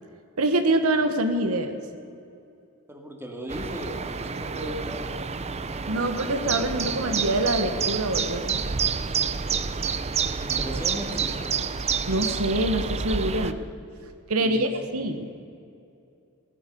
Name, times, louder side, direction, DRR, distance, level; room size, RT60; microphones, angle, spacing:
voice 1, 0.4-1.8 5.9-8.6 12.1-13.6 14.3-15.3, right 1 dB, 85° right, 7 dB, 1.2 m, -25 dB
voice 2, 2.9-5.0 10.1-11.5 14.4-14.7, equal, 10° right, 1 dB, 2.3 m, -36 dB
sound 1, 3.5-13.5, right 6 dB, 30° right, 0.6 m, -29 dB
16.5 x 12.0 x 6.9 m, 2.6 s
head